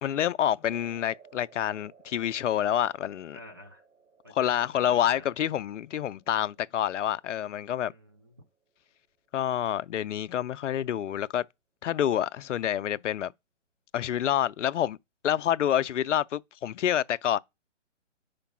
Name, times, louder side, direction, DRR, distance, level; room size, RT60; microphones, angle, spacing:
voice 1, 0.0-3.4 4.3-7.9 9.3-11.4 11.8-13.3 13.9-15.0 15.2-17.4, left 10 dB, 75° left, 0.5 m, -28 dB
sound 1, 0.6-9.0, right 6 dB, 80° right, 1.4 m, -59 dB
voice 2, 3.3-3.8 4.2-5.3 7.8-8.3, left 1 dB, 20° right, 0.3 m, -48 dB
5.1 x 4.5 x 6.0 m
hypercardioid pair, 145°, 37 cm